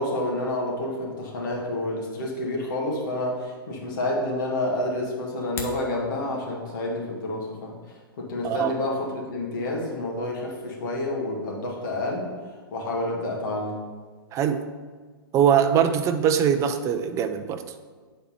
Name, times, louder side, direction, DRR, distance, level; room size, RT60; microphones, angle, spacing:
voice 1, 0.0-7.7 8.2-12.3 12.7-13.8, left 1 dB, 55° left, -2 dB, 1.9 m, -29 dB
sound 1, 5.3-5.9, left 4 dB, 20° left, 0.9 m, -36 dB
voice 2, 14.3-14.7 15.3-17.6, right 8 dB, 25° right, 8 dB, 0.5 m, -22 dB
8.9 x 4.2 x 4.2 m, 1.5 s
hypercardioid pair, 130°, 13 cm